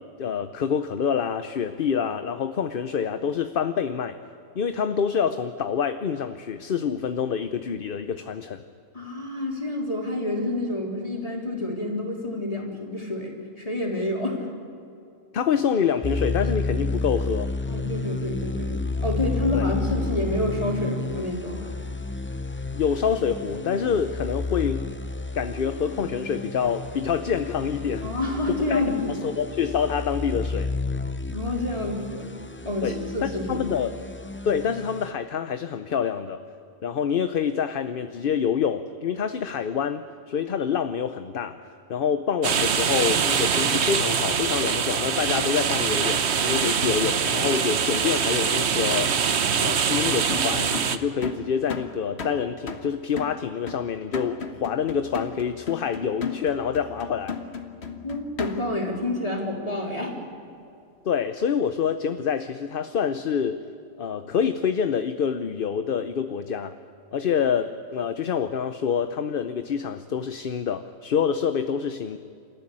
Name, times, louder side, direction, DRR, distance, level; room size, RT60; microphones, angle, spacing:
voice 1, 0.0-4.2 4.5-8.6 15.3-17.5 19.5-19.6 22.7-24.9 25.3-28.1 28.5-28.8 29.2-30.7 32.8-33.0 33.2-34.0 34.4-36.4 36.8-41.6 41.9-49.2 49.6-57.4 61.0-63.6 64.0-66.7 67.1-72.2, left 7 dB, 55° left, 9 dB, 0.9 m, -26 dB
voice 2, 8.9-14.5 17.7-18.8 19.0-21.7 28.0-29.2 31.3-32.3 32.6-33.7 58.0-60.2, left 2 dB, 35° left, -1 dB, 3.8 m, -28 dB
sound 1, 16.0-35.1, left 3 dB, 15° left, 0.4 m, -31 dB
sound 2, 42.4-51.0, right 6 dB, 75° right, 1.2 m, -24 dB
sound 3, 50.3-58.9, left 4 dB, 70° left, 1.6 m, -35 dB
28.5 x 14.0 x 9.9 m, 2.6 s
omnidirectional pair, 1.1 m